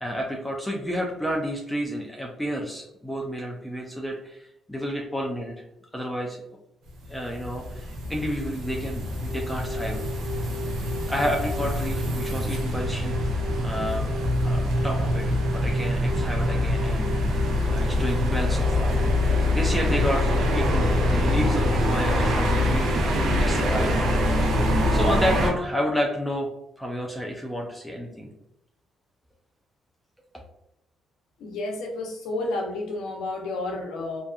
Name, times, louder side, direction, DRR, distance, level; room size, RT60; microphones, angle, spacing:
voice 1, 0.0-5.6 5.9-6.4 7.1-10.0 11.1-13.3 13.6-19.0 19.5-23.9 24.9-26.5 26.8-28.3, equal, 5° left, -1 dB, 0.4 m, -30 dB
Helicopter search party passes directly overhead, 6.9-25.5, left 1 dB, 75° right, 0.6 m, -24 dB
sound 1, 9.2-24.2, left 1 dB, 35° right, 0.9 m, -38 dB
voice 2, 31.4-34.2, left 2 dB, 85° left, 1 dB, 0.6 m, -31 dB
2.6 x 2.3 x 2.3 m, 0.82 s
cardioid pair, 90°, 0 cm